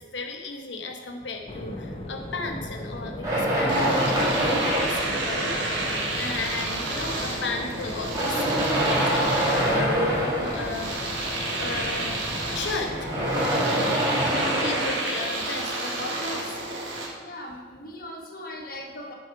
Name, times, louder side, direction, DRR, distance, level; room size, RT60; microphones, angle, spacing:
voice 1, 0.0-5.5 6.1-10.9 11.6-12.2 12.5-13.2 14.3-16.6, left 3 dB, 75° left, 4 dB, 0.9 m, -35 dB
sound 1, 1.5-13.4, left 1 dB, 35° left, 0.7 m, -37 dB
sound 2, 3.2-5.9 6.8-6.9 7.9-11.0 12.9-15.9, equal, 20° right, 2.6 m, -25 dB
Domestic sounds home sounds, 3.7-17.1, right 2 dB, 90° right, 1.6 m, -30 dB
voice 2, 17.2-19.1, left 1 dB, 55° left, 0 dB, 1.3 m, -39 dB
7.2 x 6.1 x 4.7 m, 1.4 s
head